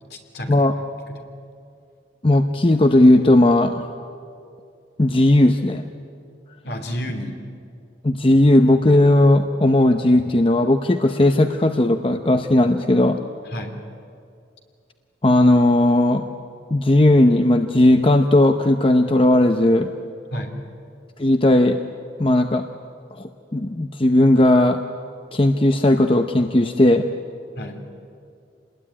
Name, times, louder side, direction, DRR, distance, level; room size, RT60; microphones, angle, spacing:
voice 1, 0.1-0.6 1.1-1.2 6.6-7.4 13.5-13.8 20.3-20.6 27.6-27.8, equal, 65° left, 4 dB, 3.2 m, -30 dB
voice 2, 2.2-3.9 5.0-5.9 8.0-13.2 15.2-16.2 16.7-19.9 21.2-21.8 22.2-22.6 23.1-24.8 25.3-27.1, left 1 dB, 30° left, 6 dB, 0.8 m, -16 dB
27.0 x 20.0 x 9.9 m, 2.4 s
head